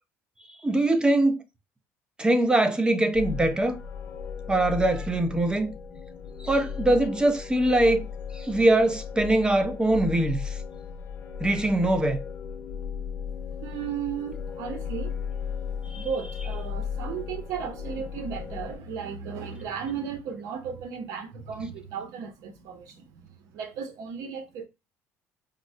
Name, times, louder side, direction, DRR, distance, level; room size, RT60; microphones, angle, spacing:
voice 1, 0.6-1.4 2.2-3.8 4.5-5.7 6.4-8.0 8.3-10.6 11.4-12.2 15.9-16.0, right 1 dB, 15° right, 0.5 m, -22 dB
sound 1, 3.1-18.8, left 7 dB, 50° left, 0.9 m, -36 dB
voice 2, 13.4-15.2 15.5-24.6, right 7 dB, 70° right, 0.8 m, -35 dB
3.7 x 2.1 x 2.6 m
supercardioid pair, 100°, 6 cm